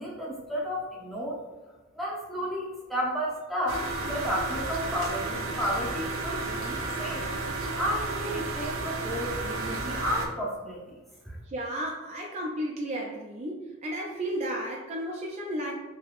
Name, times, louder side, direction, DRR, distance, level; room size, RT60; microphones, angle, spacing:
voice 1, 0.0-1.4 1.9-7.3 7.8-10.9 11.2-11.4, equal, ahead, -5 dB, 0.7 m, -32 dB
sound 1, 3.7-10.3, right 3 dB, 80° right, 0.5 m, -32 dB
voice 2, 11.5-15.7, right 1 dB, 35° right, -1 dB, 0.3 m, -33 dB
3.4 x 2.7 x 2.4 m, 1.2 s
head